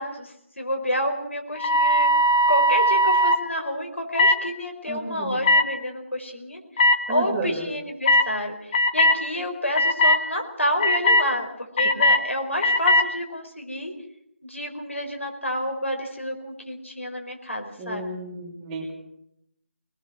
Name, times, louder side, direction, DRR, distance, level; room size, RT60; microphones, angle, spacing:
voice 1, 0.0-2.1 2.5-13.9 14.4-18.0, equal, 85° left, 3 dB, 5.0 m, -29 dB
sound 1, 1.6-3.4 4.2-4.4 5.4-5.6 6.8-6.9 8.1-8.3 8.7-9.2 9.7-10.2 10.8-11.2 11.8-12.2 12.6-13.0, left 1 dB, 30° left, 1.2 m, -18 dB
voice 2, 4.9-5.4 7.1-7.7 17.8-18.9, right 2 dB, 15° right, -1 dB, 3.0 m, -32 dB
23.5 x 20.0 x 6.2 m, 0.76 s
figure-of-eight pair, 155°, 7 cm